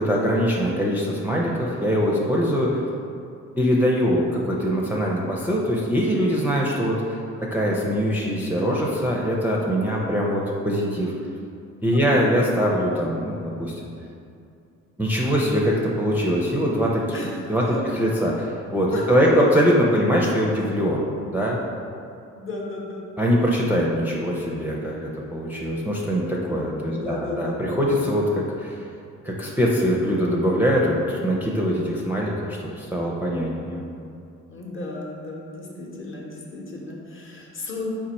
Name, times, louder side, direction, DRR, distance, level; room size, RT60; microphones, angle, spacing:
voice 1, 0.0-2.8 3.6-11.1 11.8-13.8 15.0-21.0 21.3-21.6 23.2-28.8 29.2-33.8, equal, 5° right, -4 dB, 0.4 m, -23 dB
voice 2, 11.9-12.2 17.1-17.4 17.7-17.8 18.9-19.5 22.3-23.0 26.8-28.1 34.5-37.9, left 2 dB, 45° left, -2 dB, 0.8 m, -34 dB
4.2 x 2.5 x 4.1 m, 2.5 s
cardioid pair, 90°, 30 cm